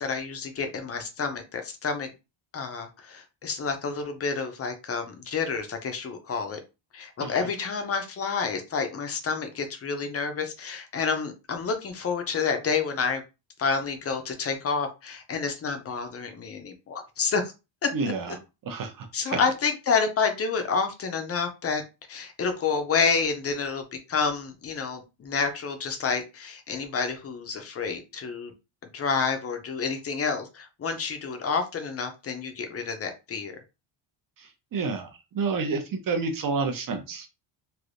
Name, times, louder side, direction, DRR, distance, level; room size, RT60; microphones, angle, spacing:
voice 1, 0.0-2.1 2.5-6.6 6.9-13.2 13.6-17.4 17.8-18.4 19.1-21.8 22.1-28.5 28.8-33.5, left 5 dB, 30° left, 6 dB, 0.5 m, -29 dB
voice 2, 17.9-18.2 18.7-19.4 34.7-35.1 35.3-37.3, right 4 dB, 45° right, 5 dB, 0.7 m, -29 dB
3.3 x 2.6 x 2.5 m, 0.27 s
wide cardioid pair, 170°, 49 cm